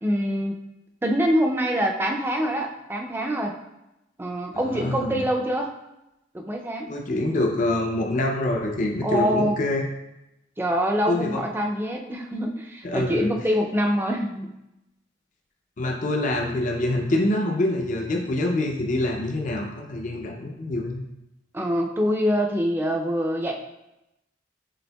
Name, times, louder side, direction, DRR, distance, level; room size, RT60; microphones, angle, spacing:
voice 1, 0.0-0.6 1.0-3.6 4.2-5.7 6.3-6.9 9.0-9.6 10.6-14.5 21.5-23.5, equal, 10° right, 2 dB, 0.4 m, -25 dB
voice 2, 4.6-5.2 6.9-9.9 11.1-11.4 12.8-13.3 15.8-21.1, left 1 dB, 45° left, 1 dB, 0.5 m, -25 dB
6.9 x 3.4 x 2.2 m, 0.91 s
head